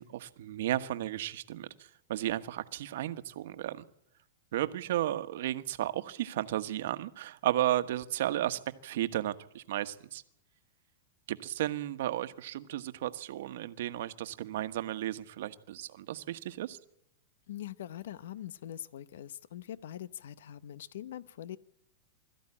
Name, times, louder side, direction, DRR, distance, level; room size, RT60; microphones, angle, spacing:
voice 1, 0.0-1.7 2.1-3.8 4.5-10.2 11.3-16.8, right 13 dB, 70° right, 1.3 m, -34 dB
voice 2, 17.5-21.6, left 11 dB, 80° left, 0.8 m, -43 dB
21.5 x 14.0 x 9.9 m
supercardioid pair, 140°, 0 cm